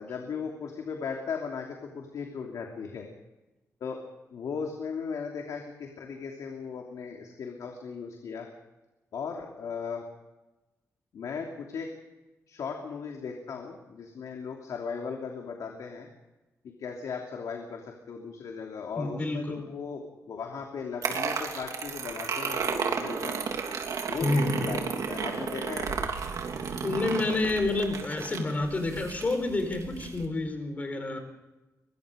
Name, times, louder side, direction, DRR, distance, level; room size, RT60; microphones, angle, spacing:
voice 1, 0.0-3.1 3.8-4.0 4.3-8.5 9.1-10.0 11.1-11.9 12.5-16.1 16.6-23.3 24.1-26.2, left 5 dB, 80° left, 2 dB, 3.0 m, -37 dB
voice 2, 19.0-19.6 24.2-24.7 26.8-31.2, left 2 dB, 30° left, 6 dB, 4.4 m, -29 dB
sound 1, 21.0-30.3, right 6 dB, 80° right, 3.3 m, -33 dB
24.0 x 23.0 x 5.2 m, 1.1 s
wide cardioid pair, 175°, 6 cm